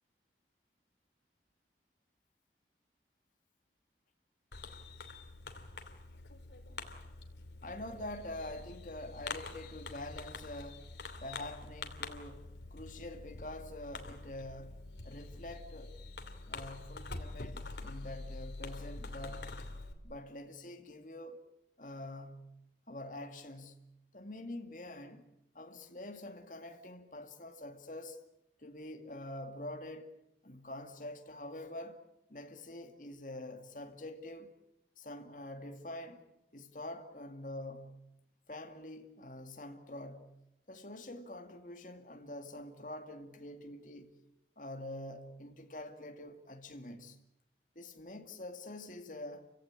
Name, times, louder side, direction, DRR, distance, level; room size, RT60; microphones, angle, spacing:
Fireworks, 4.5-19.9, left 3 dB, 85° left, 2.9 m, -46 dB
voice 1, 7.6-10.9 11.2-16.0 16.5-19.6 20.0-21.5 21.8-22.6 22.9-25.3 25.5-28.2 28.6-30.1 30.4-32.0 32.3-34.5 35.0-36.2 36.5-38.0 38.5-40.3 40.7-44.1 44.6-47.2 47.8-49.5, left 1 dB, 45° left, 2.4 m, -46 dB
30.0 x 17.0 x 9.8 m
head